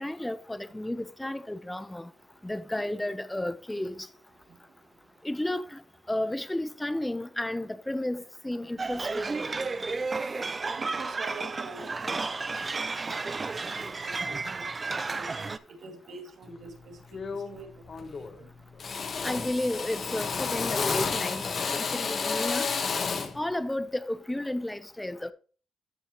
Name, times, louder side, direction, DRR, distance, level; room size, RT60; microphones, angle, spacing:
voice 1, 0.0-2.1 2.4-4.1 5.2-5.8 6.1-9.4 19.2-22.7 23.3-25.3, left 1 dB, 10° left, 0.8 m, -32 dB
sound 1, 8.8-15.6, right 3 dB, 30° right, 0.6 m, -32 dB
voice 2, 10.6-12.2 12.7-13.3 14.0-15.5 15.8-17.0 17.5-17.7, right 4 dB, 60° right, 2.4 m, -45 dB
Drill, 16.5-16.7 17.1-17.6 17.9-18.4 18.8-23.4, left 5 dB, 45° left, 1.2 m, -31 dB
14.0 x 5.6 x 3.1 m
cardioid pair, 90°, 0 cm